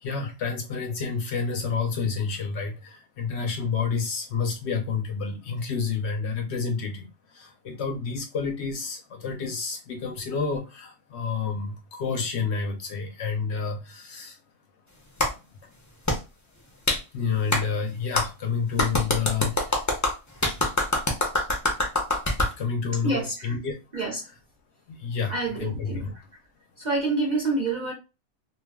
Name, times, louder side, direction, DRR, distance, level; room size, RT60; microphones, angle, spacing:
voice 1, 0.0-7.1 7.3-14.4 17.1-19.9 22.6-23.8 24.9-26.1, left 5 dB, 65° left, 0.7 m, -29 dB
Clapping, 15.2-15.3 16.1-16.2 16.9-17.0 17.5-17.6 18.1-18.3 18.8-22.5, left 1 dB, 30° left, 0.3 m, -24 dB
voice 2, 23.0-23.6 23.9-24.2 25.3-26.1 26.8-27.9, right 2 dB, 45° right, 0.6 m, -27 dB
2.2 x 2.2 x 3.4 m
omnidirectional pair, 1.4 m